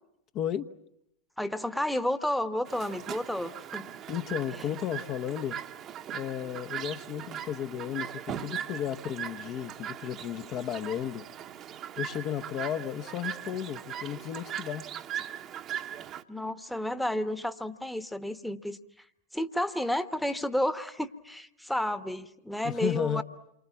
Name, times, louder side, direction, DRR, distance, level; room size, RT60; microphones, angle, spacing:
voice 1, 0.3-0.7 4.1-5.6 6.1-11.3 12.0-14.9 22.6-23.2, left 10 dB, 35° left, 5 dB, 1.0 m, -34 dB
voice 2, 1.4-3.9 16.3-18.8 19.3-23.2, left 1 dB, ahead, 10 dB, 1.2 m, -31 dB
Chirp tweet, 2.7-16.2, right 9 dB, 30° right, 1.1 m, -39 dB
29.0 x 24.5 x 7.2 m, 0.80 s
figure-of-eight pair, 90°, 0 cm